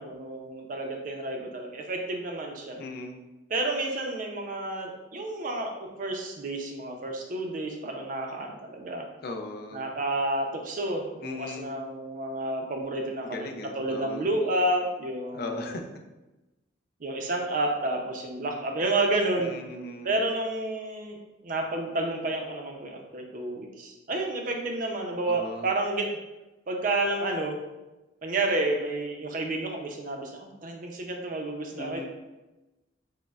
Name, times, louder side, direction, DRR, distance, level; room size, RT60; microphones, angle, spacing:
voice 1, 0.0-2.8 3.5-5.7 6.0-9.1 9.7-13.5 13.7-15.7 17.0-19.6 20.0-21.2 21.4-26.2 26.7-27.6 28.2-32.1, right 2 dB, 40° right, 2 dB, 0.5 m, -30 dB
voice 2, 2.8-3.2 9.2-9.9 11.2-11.7 13.2-14.3 15.3-15.8 19.4-20.1 25.3-25.7 31.7-32.1, left 2 dB, 50° left, 3 dB, 0.4 m, -38 dB
6.3 x 2.1 x 2.3 m, 1.1 s
head